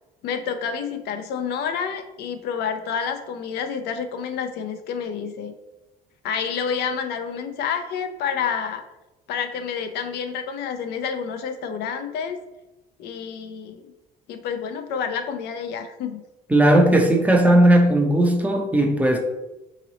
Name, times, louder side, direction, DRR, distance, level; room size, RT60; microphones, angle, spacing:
voice 1, 0.2-5.5 6.2-8.8 9.3-12.4 13.0-13.8 14.3-16.2, left 7 dB, 80° left, 7 dB, 0.5 m, -29 dB
voice 2, 16.5-19.2, right 1 dB, 10° right, 2 dB, 0.7 m, -17 dB
3.8 x 3.0 x 3.9 m, 1.0 s
cardioid pair, 110°, 17 cm